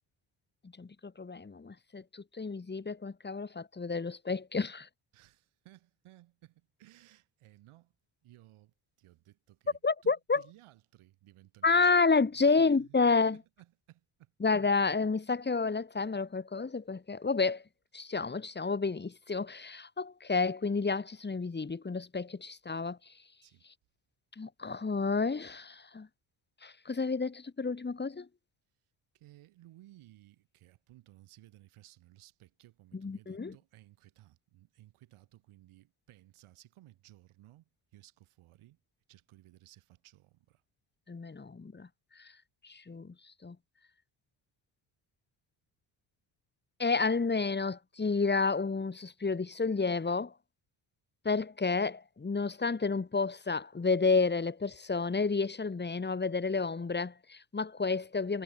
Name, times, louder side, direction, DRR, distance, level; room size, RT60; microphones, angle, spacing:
voice 1, 0.8-4.9 9.8-10.4 11.6-13.4 14.4-17.6 17.9-23.0 24.4-26.1 26.6-28.3 33.0-33.5 41.1-41.9 42.2-42.3 42.6-43.1 43.4-43.6 46.8-50.3 51.3-58.4, left 4 dB, 20° left, 1.9 m, -30 dB
voice 2, 5.1-7.9 8.2-9.8 10.0-11.9 12.4-14.3 14.6-14.7 23.4-23.7 29.1-38.8 39.1-40.6, right 15 dB, 85° right, 7.7 m, -59 dB
cardioid pair, 80°, 48 cm